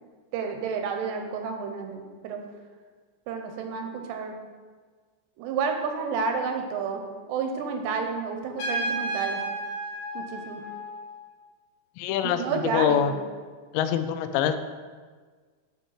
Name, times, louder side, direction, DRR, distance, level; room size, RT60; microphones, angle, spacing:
voice 1, 0.3-2.4 3.3-4.3 5.4-7.0 7.3-9.4 10.1-10.6 12.2-13.2, right 5 dB, 85° right, 4 dB, 3.0 m, -30 dB
Trumpet, 8.6-11.2, right 1 dB, 55° left, 3.5 m, -32 dB
voice 2, 12.0-13.1 13.7-14.6, left 9 dB, 90° left, 9 dB, 2.8 m, -25 dB
10.0 x 4.5 x 5.6 m, 1.5 s
omnidirectional pair, 5.0 m